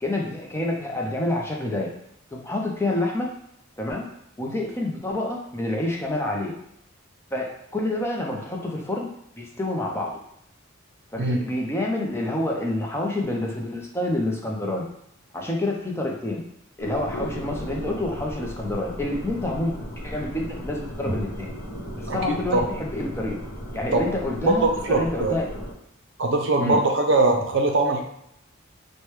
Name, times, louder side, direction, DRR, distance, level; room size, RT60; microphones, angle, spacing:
voice 1, 0.0-1.9 2.3-3.3 3.8-4.1 4.4-6.5 7.3-10.1 11.1-14.9 15.3-16.4 16.8-19.8 20.0-21.5 22.0-23.4 23.7-25.5 26.6-26.8, left 1 dB, 10° left, -1 dB, 0.5 m, -28 dB
sound 1, 16.8-25.7, equal, 80° left, 0.9 m, -35 dB
voice 2, 24.4-25.3 26.2-28.0, right 2 dB, 60° right, 3 dB, 0.5 m, -21 dB
4.5 x 2.2 x 3.2 m, 0.74 s
head